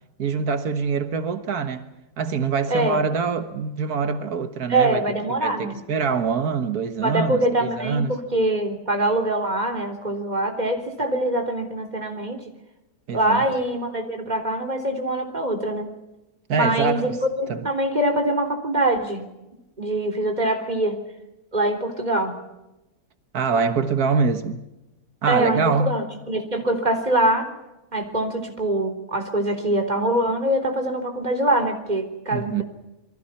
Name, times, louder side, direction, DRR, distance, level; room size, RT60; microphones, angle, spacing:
voice 1, 0.2-8.2 13.1-13.4 16.5-17.2 17.5-17.7 23.3-24.6 25.2-26.0 32.3-32.6, right 5 dB, 90° right, 1.9 m, -24 dB
voice 2, 2.7-3.0 4.7-5.8 7.0-12.4 13.1-15.9 16.5-17.1 17.4-19.2 19.8-21.0 21.5-22.4 25.3-27.5 27.9-32.6, right 1 dB, 30° right, 3.9 m, -23 dB
28.0 x 23.0 x 5.8 m
omnidirectional pair, 1.6 m